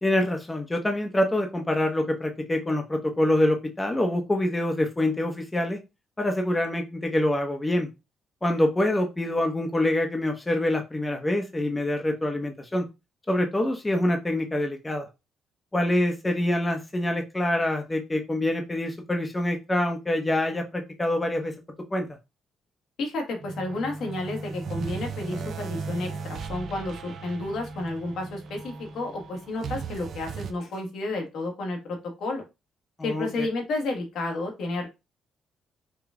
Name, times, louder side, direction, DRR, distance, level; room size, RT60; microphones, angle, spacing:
voice 1, 0.0-5.8 6.2-7.9 8.4-12.9 13.3-15.1 15.7-21.5 21.9-22.1 33.0-33.5, left 1 dB, 15° left, 4 dB, 0.8 m, -25 dB
voice 2, 23.0-32.4 33.0-34.9, left 2 dB, 75° left, 2 dB, 1.6 m, -31 dB
sound 1, 23.4-30.5, right 4 dB, 60° right, 0.6 m, -37 dB
4.9 x 2.3 x 3.6 m, 0.25 s
cardioid pair, 90°, 0 cm